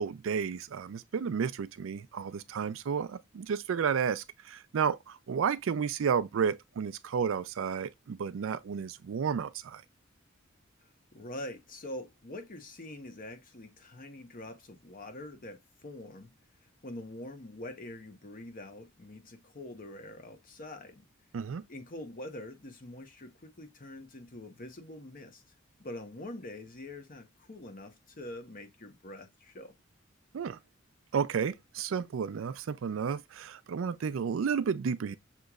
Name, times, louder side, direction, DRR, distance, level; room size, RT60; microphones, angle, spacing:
voice 1, 0.0-9.8 21.3-21.6 30.3-30.6 31.1-35.2, right 6 dB, 75° right, 0.4 m, -32 dB
voice 2, 11.1-16.3 16.8-21.0 21.7-25.4 25.8-29.7, left 1 dB, 45° left, 0.9 m, -44 dB
6.4 x 2.9 x 2.3 m
head